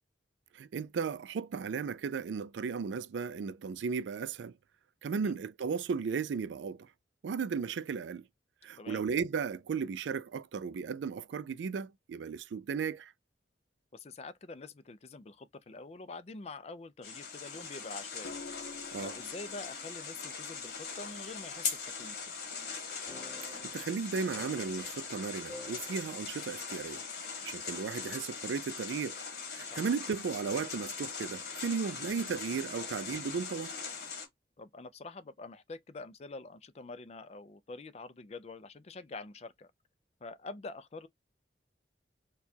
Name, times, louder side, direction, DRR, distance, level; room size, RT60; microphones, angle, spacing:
voice 1, 0.5-4.6 5.0-6.9 7.2-8.3 8.6-13.1 18.9-19.1 23.5-27.0 27.4-29.2 29.5-33.8, right 5 dB, 80° right, 0.4 m, -35 dB
voice 2, 13.9-18.4 19.0-22.2 29.7-29.8 34.6-39.7 40.2-41.1, left 3 dB, 35° left, 0.4 m, -46 dB
sound 1, 17.0-34.3, left 5 dB, 60° left, 1.3 m, -41 dB
sound 2, 18.2-22.4 24.1-24.4, left 3 dB, 75° left, 0.7 m, -51 dB
sound 3, 23.1-25.2 25.5-26.5 26.7-26.8 27.7-28.5, left 1 dB, 10° left, 2.0 m, -51 dB
4.5 x 2.3 x 2.7 m
head